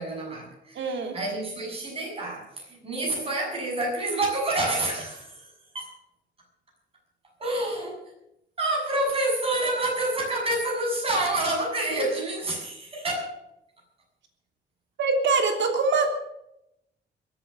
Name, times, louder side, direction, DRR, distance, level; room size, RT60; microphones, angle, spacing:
voice 1, 0.0-0.8 1.1-5.9 7.4-8.1 8.6-13.4, right 1 dB, 30° right, -1 dB, 7.1 m, -28 dB
voice 2, 0.7-1.2 15.0-16.1, right 4 dB, 75° right, 4 dB, 3.2 m, -23 dB
22.5 x 8.5 x 6.7 m, 0.82 s
cardioid pair, 150°, 19 cm